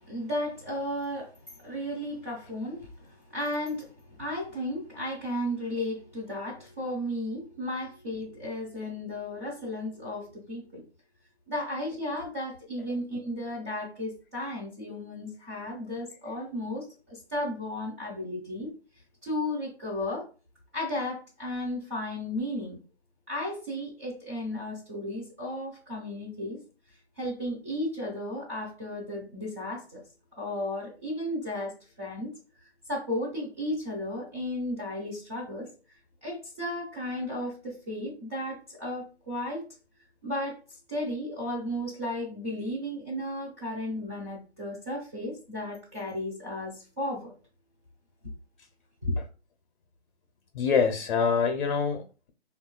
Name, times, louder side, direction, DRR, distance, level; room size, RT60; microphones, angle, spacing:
voice 1, 0.0-3.9 4.2-10.8 11.5-18.7 19.2-20.3 20.7-22.8 23.3-26.6 27.2-30.0 30.4-32.3 32.9-35.7 36.2-39.6 40.2-40.6 40.9-47.3 49.0-49.2, left 1 dB, 15° right, 0.4 m, -34 dB
voice 2, 50.5-52.3, left 5 dB, 50° left, 0.5 m, -26 dB
3.1 x 2.3 x 2.2 m
hypercardioid pair, 150°, 33 cm